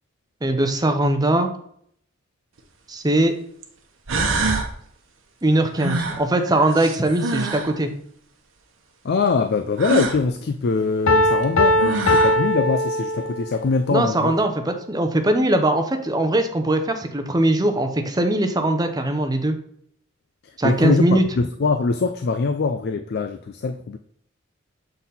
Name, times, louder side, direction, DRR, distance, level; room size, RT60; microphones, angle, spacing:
voice 1, 0.4-1.5 2.9-3.3 5.4-7.9 13.9-19.6 20.6-21.2, right 1 dB, 20° right, 6 dB, 0.7 m, -20 dB
sound 1, 2.6-2.7 3.6-3.7 4.1-4.7 5.8-7.7 9.8-10.2 11.4-11.5 11.8-12.4, right 3 dB, 75° right, 1.0 m, -25 dB
voice 2, 9.0-14.3 20.6-24.0, left 4 dB, 55° left, 8 dB, 0.4 m, -23 dB
Piano, 11.1-13.6, left 1 dB, 80° left, 0.7 m, -20 dB
7.2 x 3.9 x 4.2 m, 0.65 s
head